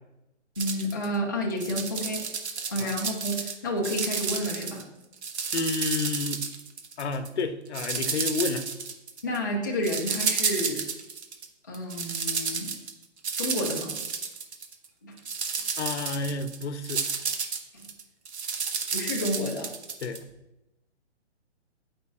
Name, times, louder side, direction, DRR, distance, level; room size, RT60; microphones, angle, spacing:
voice 1, 0.6-2.3 2.7-4.9 9.2-10.9 11.7-12.7 13.4-14.0 15.0-15.2 17.7-17.9 18.9-19.7, equal, 20° left, -3 dB, 0.4 m, -30 dB
sound 1, 0.6-1.1 1.5-3.5 3.8-4.8 5.1-7.3 7.7-9.4 9.8-11.5 11.7-14.9 15.2-20.2, right 5 dB, 70° right, 1.0 m, -31 dB
voice 2, 5.5-6.4 7.0-8.7 15.8-17.1 20.0-20.2, left 4 dB, 70° left, 9 dB, 0.7 m, -30 dB
8.4 x 5.1 x 2.3 m, 0.93 s
hypercardioid pair, 165°, 35 cm